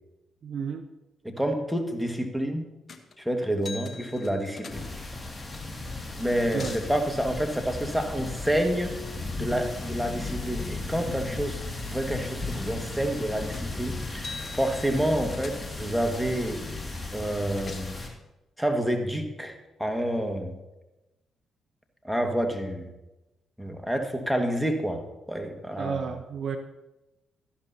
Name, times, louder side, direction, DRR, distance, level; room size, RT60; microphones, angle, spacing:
voice 1, 0.4-0.9 6.5-6.8 25.8-26.6, right 6 dB, 60° right, 8 dB, 0.6 m, -32 dB
voice 2, 1.2-2.7 3.2-5.1 6.2-9.0 9.4-16.6 17.1-18.0 18.6-20.6 22.0-22.9 23.6-26.2, equal, 5° right, 4 dB, 1.8 m, -29 dB
sound 1, 2.9-3.2 3.6-5.2 6.0-7.0 13.5-13.8 14.1-16.0 17.3-18.0, left 4 dB, 45° left, 1.1 m, -43 dB
sound 2, 4.7-18.1, left 3 dB, 20° left, 2.3 m, -36 dB
13.0 x 11.5 x 2.8 m, 1.0 s
hypercardioid pair, 40°, 0 cm